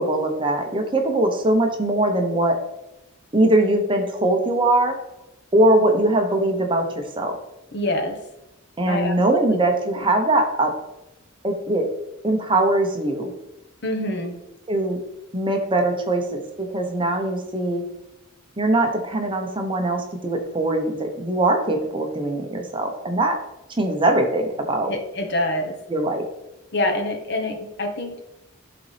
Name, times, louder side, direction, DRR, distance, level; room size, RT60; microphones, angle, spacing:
voice 1, 0.0-2.6 3.3-5.0 5.5-7.3 8.8-10.7 11.4-11.9 12.2-13.3 14.7-15.0 15.3-17.8 18.6-23.4 23.8-24.9 25.9-26.2, right 1 dB, 25° right, 3 dB, 0.8 m, -21 dB
voice 2, 7.7-8.3 8.9-9.6 9.9-10.0 13.8-14.4 24.9-25.8 26.7-28.2, left 1 dB, 50° left, 4 dB, 1.0 m, -26 dB
11.0 x 3.9 x 3.3 m, 0.92 s
head